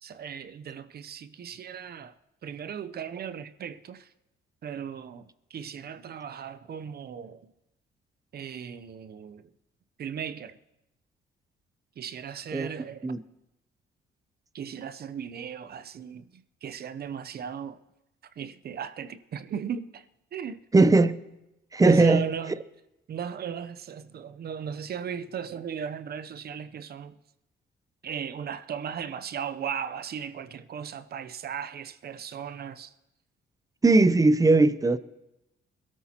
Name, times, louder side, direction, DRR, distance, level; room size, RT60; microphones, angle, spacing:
voice 1, 0.0-2.1 2.4-4.1 4.6-7.5 8.3-9.5 10.0-10.6 12.0-13.1 14.5-17.8 18.4-20.1 20.3-20.6 21.8-22.6 23.1-27.2 28.0-32.9, right 8 dB, 50° right, 0.7 m, -37 dB
voice 2, 20.7-21.2 21.7-22.2 33.8-35.0, right 3 dB, 15° right, 0.6 m, -19 dB
22.0 x 13.0 x 2.9 m
cardioid pair, 90°, 20 cm